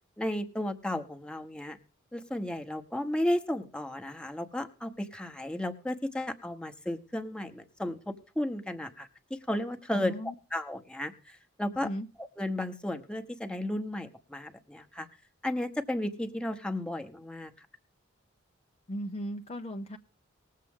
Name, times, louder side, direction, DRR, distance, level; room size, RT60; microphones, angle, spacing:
voice 1, 0.2-1.8 2.1-10.2 10.5-11.9 12.4-15.1 15.4-17.7, left 1 dB, 5° left, 5 dB, 1.0 m, -34 dB
voice 2, 9.9-10.3 11.8-12.1 18.9-20.0, equal, 30° left, 5 dB, 0.6 m, -36 dB
20.0 x 7.5 x 3.6 m, 0.36 s
head